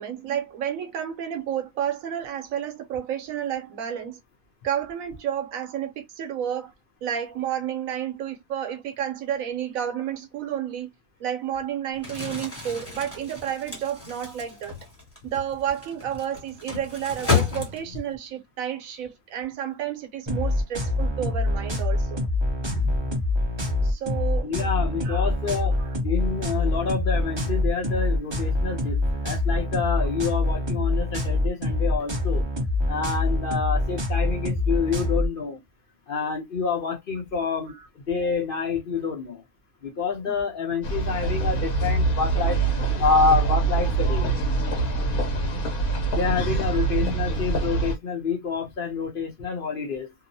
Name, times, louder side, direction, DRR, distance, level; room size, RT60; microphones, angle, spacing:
voice 1, 0.0-4.2 4.6-6.7 7.0-10.9 11.2-14.7 15.2-22.2 23.8-24.5 25.0-25.3 25.6-25.7, right 9 dB, 70° right, 1.0 m, -31 dB
Crumpling crinkling, 11.9-18.1, left 5 dB, 10° left, 1.0 m, -31 dB
sound 1, 20.3-35.3, left 2 dB, 45° right, 0.3 m, -25 dB
voice 2, 24.4-25.8 26.0-32.4 32.9-35.6 36.1-39.4 39.8-42.6 43.0-44.3 46.1-50.1, left 5 dB, 45° left, 0.7 m, -27 dB
sound 2, 40.8-48.0, right 3 dB, 75° left, 1.3 m, -24 dB
2.9 x 2.0 x 2.6 m
omnidirectional pair, 1.6 m